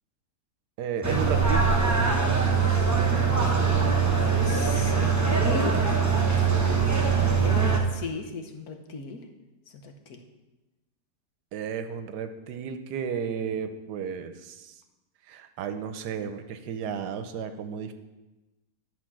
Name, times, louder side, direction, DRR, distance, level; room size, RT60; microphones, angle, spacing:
voice 1, 0.8-1.7 11.5-14.7 15.3-17.9, right 7 dB, 80° right, 9 dB, 1.3 m, -33 dB
sound 1, 1.0-7.8, right 5 dB, 15° right, 0.8 m, -22 dB
voice 2, 3.3-5.8 7.1-9.2 9.8-10.2, left 4 dB, 65° left, 5 dB, 1.4 m, -36 dB
11.0 x 4.5 x 6.1 m, 1.1 s
omnidirectional pair, 1.7 m